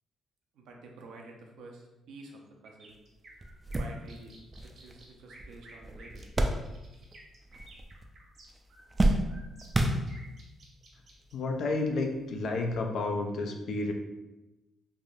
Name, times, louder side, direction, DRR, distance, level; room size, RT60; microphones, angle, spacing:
voice 1, 0.5-2.9 3.8-4.4 4.6-6.3, right 2 dB, 80° right, 1 dB, 0.5 m, -49 dB
sound 1, 2.6-11.3, right 2 dB, 60° right, 0.9 m, -54 dB
sound 2, 2.9-3.0 3.4-7.2 7.5-8.2 8.5-10.5 11.3-11.4 12.7-12.8, right 1 dB, 25° right, 0.3 m, -31 dB
voice 2, 11.3-13.9, left 3 dB, 70° left, 3 dB, 0.4 m, -31 dB
3.3 x 2.7 x 2.4 m, 1.0 s
cardioid pair, 90°, 0 cm